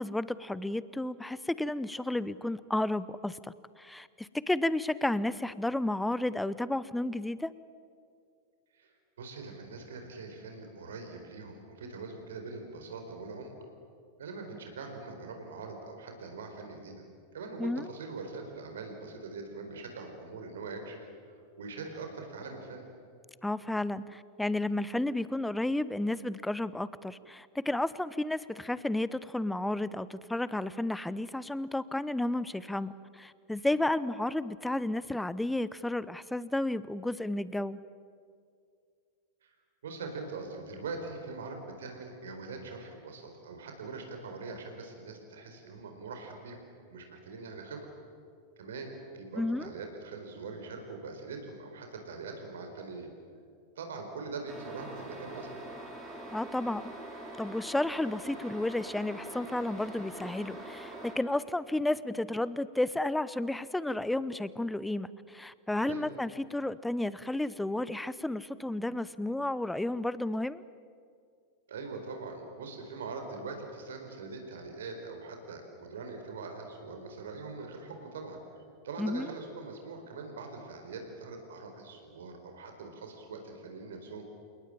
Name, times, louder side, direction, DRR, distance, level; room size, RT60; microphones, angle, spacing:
voice 1, 0.0-7.5 17.6-17.8 23.4-37.8 49.4-49.7 56.3-56.9 57.4-70.6 79.0-79.3, left 1 dB, 5° left, 18 dB, 0.8 m, -32 dB
voice 2, 9.2-13.5 14.2-17.0 17.3-21.1 21.6-22.8 39.4-39.5 39.8-46.6 46.9-47.9 48.6-53.1 53.8-55.5 65.8-66.1 71.7-78.4 78.8-84.2, right 3 dB, 60° right, 4 dB, 4.4 m, -42 dB
sound 1, 54.5-61.2, right 1 dB, 15° right, 6.0 m, -44 dB
29.0 x 19.0 x 8.8 m, 2.3 s
figure-of-eight pair, 90°, 0 cm